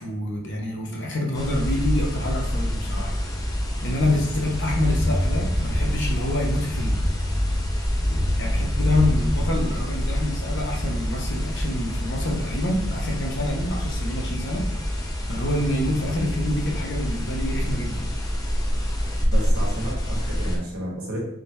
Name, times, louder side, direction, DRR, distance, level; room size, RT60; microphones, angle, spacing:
voice 1, 0.0-3.1 3.8-7.0 8.4-14.7 15.0-18.1 20.3-20.4, left 1 dB, 55° left, -1 dB, 0.8 m, -27 dB
sound 1, 1.3-20.6, equal, 15° left, 0.5 m, -26 dB
voice 2, 19.2-21.2, right 1 dB, 80° right, -3 dB, 1.3 m, -32 dB
3.7 x 2.8 x 3.3 m, 0.80 s
head